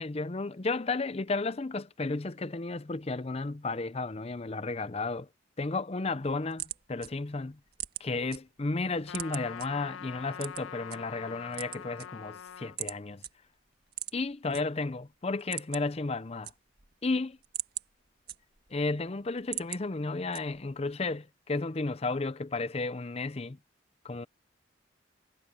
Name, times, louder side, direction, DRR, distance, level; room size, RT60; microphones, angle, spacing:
voice 1, 0.0-5.3 5.6-7.6 8.0-13.2 14.1-16.5 17.0-17.4 18.7-23.6 24.0-24.3, left 3 dB, 30° left, 0.6 m, -33 dB
sound 1, 6.4-8.4 8.7-9.7 10.4-11.0 11.4-12.4 12.8-13.0 13.2-13.3 13.9-14.6 15.0-15.1 15.3-16.0 16.3-16.9 17.3-18.8 19.2-19.8 20.3-20.8, right 12 dB, 50° right, 1.8 m, -39 dB
Trumpet, 9.1-12.8, left 8 dB, 80° left, 0.5 m, -44 dB
head